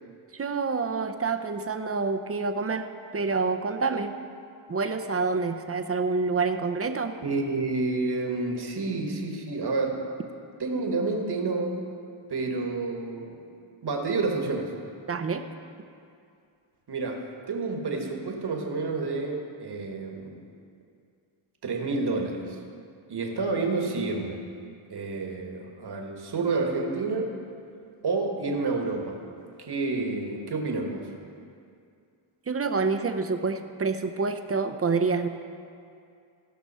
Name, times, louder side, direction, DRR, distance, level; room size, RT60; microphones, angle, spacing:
voice 1, 0.3-4.1 4.7-7.2 15.1-15.4 32.5-35.3, right 4 dB, 30° right, 7 dB, 0.7 m, -27 dB
voice 2, 7.2-10.0 10.6-11.8 12.3-13.4 13.8-14.8 16.9-20.4 21.6-22.6 23.1-24.4 24.9-27.4 28.0-29.2 29.6-31.1, right 3 dB, 50° right, 2 dB, 1.5 m, -29 dB
15.0 x 6.0 x 5.5 m, 2.4 s
cardioid pair, 85°, 49 cm